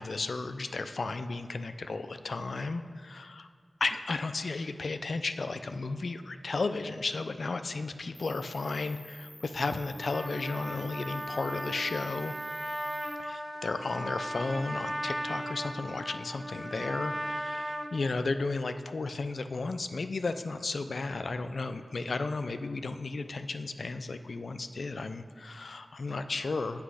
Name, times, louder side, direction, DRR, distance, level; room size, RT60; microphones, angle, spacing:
voice 1, 0.0-3.5 3.8-12.3 13.2-26.8, left 3 dB, 75° left, 9 dB, 0.4 m, -34 dB
Cricket, 8.1-13.1, left 1 dB, 20° left, 0.9 m, -51 dB
Trumpet, 9.9-17.9, equal, 15° right, 0.8 m, -37 dB
8.1 x 5.9 x 4.8 m, 2.1 s
wide cardioid pair, 60°, 0 cm